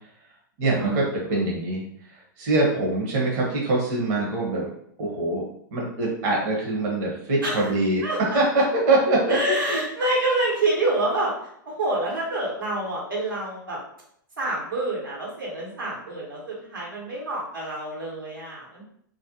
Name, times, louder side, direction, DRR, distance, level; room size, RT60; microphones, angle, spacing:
voice 1, 0.6-1.8 2.1-4.7 5.0-5.4 5.7-9.4 9.7-9.8, right 2 dB, 50° right, -3 dB, 0.8 m, -23 dB
voice 2, 9.3-11.3 11.6-13.8 14.4-18.8, right 2 dB, 90° right, -4 dB, 1.2 m, -27 dB
2.5 x 2.0 x 2.8 m, 0.70 s
hypercardioid pair, 110°, 11 cm